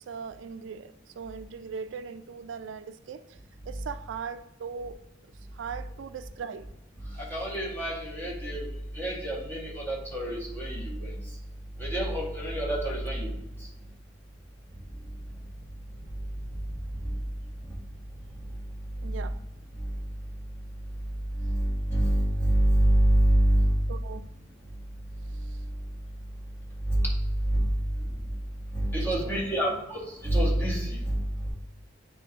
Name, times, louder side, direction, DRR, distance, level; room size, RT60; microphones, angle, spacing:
voice 1, 0.0-3.2 3.7-5.0 5.5-6.7 19.0-19.4 23.9-24.3 29.1-29.8, right 6 dB, 75° right, 0.3 m, -39 dB
voice 2, 7.3-8.6 9.0-11.1 11.8-13.3 21.4-23.7 26.9-27.0 27.5-27.6 28.7-29.7 30.2-31.2, right 1 dB, 10° left, 1.7 m, -25 dB
9.9 x 3.9 x 2.8 m
head